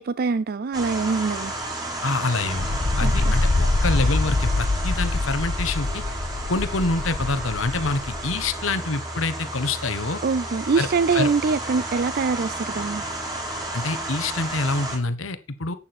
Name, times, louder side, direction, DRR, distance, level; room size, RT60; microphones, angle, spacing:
voice 1, 0.0-1.5 3.0-3.4 10.2-13.0, right 4 dB, 50° right, 0.4 m, -24 dB
sound 1, 0.7-15.0, right 1 dB, 20° right, 3.8 m, -32 dB
voice 2, 2.0-2.7 3.0-6.0 6.5-10.2 10.8-10.9 11.1-11.3 13.7-15.8, left 3 dB, 75° left, 1.3 m, -26 dB
sound 2, 2.5-8.5, left 2 dB, 45° left, 0.8 m, -24 dB
11.5 x 8.6 x 4.4 m
head